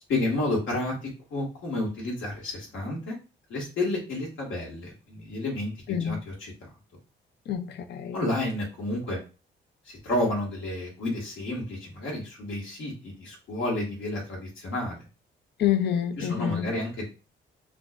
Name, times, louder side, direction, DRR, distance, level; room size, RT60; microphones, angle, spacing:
voice 1, 0.1-3.2 3.5-6.5 8.1-9.2 9.9-15.0 16.2-17.1, left 2 dB, 80° left, 1.9 m, -31 dB
voice 2, 5.9-6.2 7.5-8.2 15.6-16.7, left 9 dB, 55° left, 0.5 m, -27 dB
5.7 x 2.4 x 2.5 m
cardioid pair, 90°, 20 cm